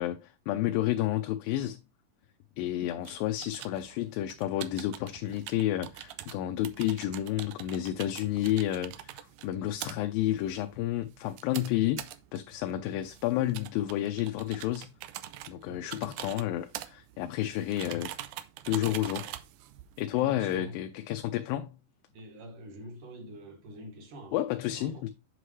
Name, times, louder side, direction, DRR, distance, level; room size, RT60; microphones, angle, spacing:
voice 1, 0.0-1.8 2.6-9.1 9.4-14.9 15.5-18.1 18.7-19.3 20.0-21.7 24.3-25.1, left 13 dB, 90° left, 2.4 m, -30 dB
sound 1, 3.0-20.6, right 13 dB, 85° right, 1.7 m, -45 dB
voice 2, 15.7-16.0 20.1-20.8 22.1-24.4 24.7-25.1, equal, 65° right, 2.9 m, -45 dB
7.8 x 5.8 x 3.2 m
omnidirectional pair, 4.0 m